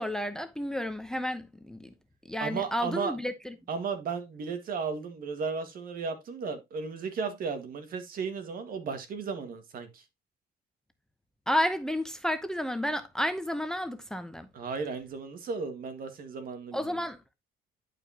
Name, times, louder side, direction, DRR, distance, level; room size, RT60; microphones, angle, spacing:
voice 1, 0.0-1.9 2.3-3.5 11.5-14.5 16.7-17.2, left 1 dB, 5° left, 0.8 m, -31 dB
voice 2, 2.4-3.1 3.7-10.0 14.5-17.0, right 5 dB, 60° right, 1.9 m, -35 dB
11.0 x 5.0 x 2.9 m
cardioid pair, 110°, 17 cm